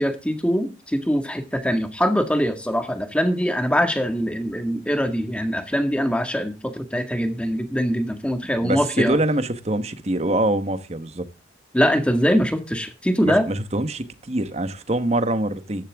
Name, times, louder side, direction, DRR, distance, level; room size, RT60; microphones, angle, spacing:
voice 1, 0.0-9.2 11.7-13.5, equal, 5° left, 1.9 m, -22 dB
voice 2, 8.6-11.2 13.2-15.9, right 1 dB, 35° right, 1.3 m, -24 dB
14.0 x 11.5 x 3.6 m
head